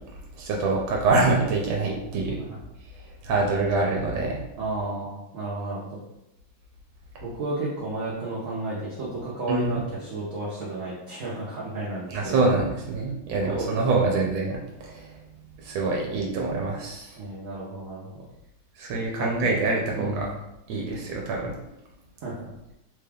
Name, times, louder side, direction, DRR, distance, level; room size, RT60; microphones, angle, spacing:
voice 1, 0.4-2.4 3.2-4.4 9.5-9.8 12.1-15.1 15.6-17.2 18.8-20.3 20.7-21.5, right 3 dB, 85° right, -1 dB, 1.4 m, -25 dB
voice 2, 4.6-6.0 7.2-12.6 13.4-14.2 17.2-18.3 19.1-19.6 19.9-20.4 22.2-22.3, right 2 dB, 60° right, -6 dB, 0.9 m, -33 dB
4.0 x 2.3 x 3.4 m, 0.88 s
omnidirectional pair, 2.1 m